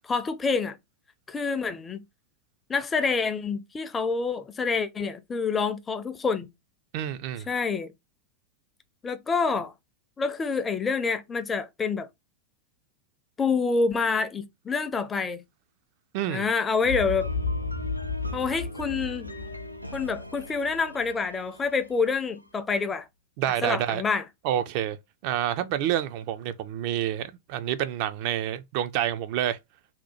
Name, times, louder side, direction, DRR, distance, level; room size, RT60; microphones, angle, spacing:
voice 1, 0.0-0.8 1.3-2.0 2.7-6.5 7.5-7.9 9.0-9.7 10.2-12.1 13.4-15.4 16.3-17.3 18.3-19.3 19.9-23.1 23.6-24.2, left 4 dB, 15° left, 0.4 m, -27 dB
voice 2, 6.9-7.5 16.1-16.5 23.4-24.0 24.4-25.0 25.2-29.6, right 11 dB, 45° right, 0.3 m, -28 dB
sound 1, 16.8-22.6, left 1 dB, 90° left, 0.3 m, -42 dB
Boom, 16.8-21.1, left 3 dB, 70° left, 0.7 m, -33 dB
2.8 x 2.1 x 4.1 m
figure-of-eight pair, 90°, 0 cm